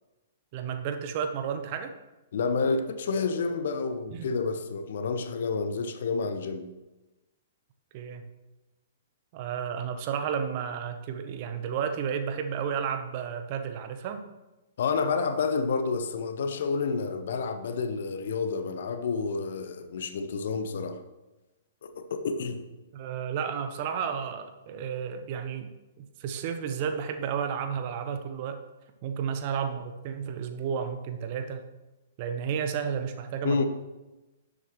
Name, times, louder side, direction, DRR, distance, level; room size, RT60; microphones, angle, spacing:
voice 1, 0.5-1.9 4.1-4.3 7.9-8.2 9.3-14.2 22.9-25.7 26.0-28.6 29.0-31.7 32.2-33.7, right 7 dB, 40° right, 0.9 m, -32 dB
voice 2, 2.3-6.7 14.8-21.0 21.8-22.6 33.4-33.7, left 4 dB, 55° left, 0.9 m, -29 dB
12.5 x 7.8 x 3.2 m
figure-of-eight pair, 110°, 0 cm